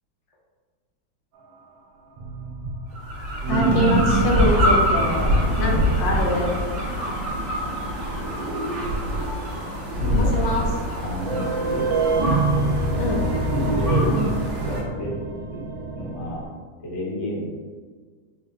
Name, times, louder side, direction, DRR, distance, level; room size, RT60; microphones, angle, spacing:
sound 1, 2.2-9.6 9.9-10.0 10.6-10.7 11.2-16.5, right 3 dB, 75° right, 1.3 m, -26 dB
sound 2, 2.9-14.8, equal, 45° right, 1.0 m, -25 dB
voice 1, 3.5-5.3 5.6-6.5 10.2-10.6 13.0-13.2, left 2 dB, 75° left, -1 dB, 1.4 m, -24 dB
voice 2, 9.9-10.7 11.0-11.8 13.5-14.4 14.6-15.1 15.5-15.6 15.9-16.4 16.8-17.5, left 1 dB, 25° left, -7 dB, 0.7 m, -29 dB
4.3 x 2.1 x 3.6 m, 1.5 s
omnidirectional pair, 2.1 m